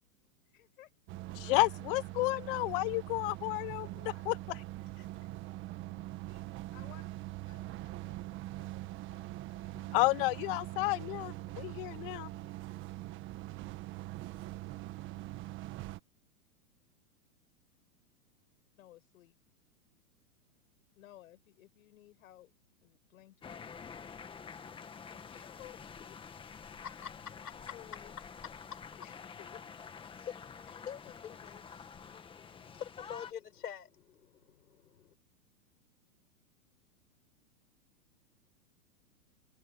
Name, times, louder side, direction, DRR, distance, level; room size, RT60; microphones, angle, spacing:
voice 1, 0.5-0.9 6.7-9.7 18.8-19.4 20.9-22.5 22.8-23.7 25.1-26.2 27.0-28.2 29.0-29.7 30.6-31.9, left 14 dB, 65° left, 5.9 m, -58 dB
sound 1, 1.1-16.0, right 17 dB, 25° right, 1.5 m, -43 dB
voice 2, 1.4-4.6 9.9-12.3, left 23 dB, 40° left, 1.0 m, -31 dB
sound 2, 23.4-33.3, left 6 dB, 10° left, 1.7 m, -48 dB
voice 3, 26.7-27.5 28.5-29.0 30.1-31.0 32.1-32.2 32.5-35.1, left 8 dB, 90° left, 6.6 m, -46 dB
hypercardioid pair, 145°, 45 cm